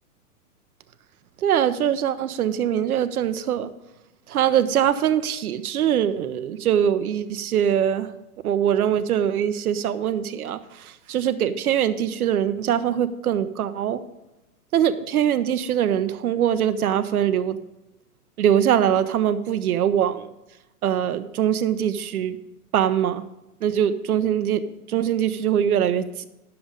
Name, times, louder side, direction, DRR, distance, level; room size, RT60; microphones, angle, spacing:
voice 1, 1.4-3.7 4.3-8.1 8.4-14.0 14.7-17.6 18.4-20.3 20.8-22.4 22.7-23.2 23.6-26.3, right 9 dB, 70° right, 10 dB, 0.8 m, -22 dB
11.5 x 6.9 x 5.1 m, 0.96 s
hypercardioid pair, 145°, 46 cm